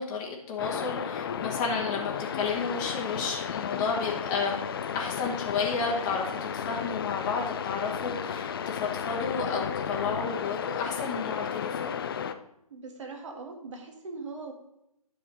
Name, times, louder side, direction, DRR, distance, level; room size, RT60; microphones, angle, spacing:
voice 1, 0.0-11.9, left 5 dB, 20° left, -2 dB, 1.1 m, -32 dB
sound 1, 0.6-12.3, left 7 dB, 40° left, 0.5 m, -33 dB
voice 2, 12.7-14.5, right 3 dB, 55° right, 3 dB, 1.9 m, -40 dB
10.0 x 6.4 x 4.0 m, 0.82 s
figure-of-eight pair, 140°, 19 cm